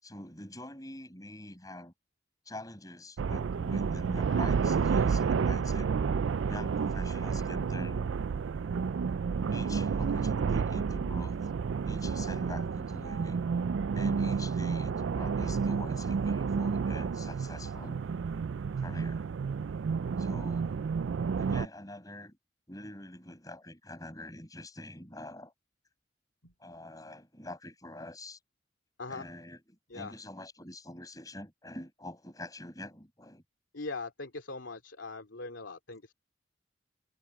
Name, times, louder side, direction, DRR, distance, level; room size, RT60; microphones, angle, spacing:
voice 1, 0.0-1.9 2.4-6.0 6.5-8.1 9.5-11.4 11.9-13.5 13.9-18.0 18.8-19.3 20.2-20.8 21.4-22.4 22.7-25.5 26.6-28.4 29.1-33.4, left 1 dB, 20° left, 6.2 m, -45 dB
sound 1, 3.2-21.7, right 5 dB, 90° right, 0.4 m, -30 dB
voice 2, 33.7-36.1, left 3 dB, 85° left, 2.7 m, -41 dB
head